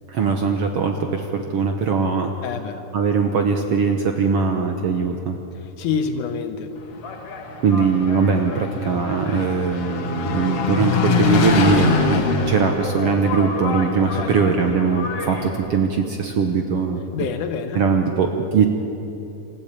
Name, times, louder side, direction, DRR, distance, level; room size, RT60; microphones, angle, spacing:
voice 1, 0.1-2.3 2.9-5.4 7.6-17.0 17.7-18.7, right 5 dB, 65° right, 4 dB, 1.6 m, -21 dB
voice 2, 2.4-2.8 5.5-6.7 14.0-14.4 17.1-17.8, left 6 dB, 70° left, 7 dB, 2.5 m, -27 dB
Engine, 6.8-15.7, left 4 dB, 50° left, 2.4 m, -24 dB
27.0 x 14.5 x 8.6 m, 3.0 s
omnidirectional pair, 3.9 m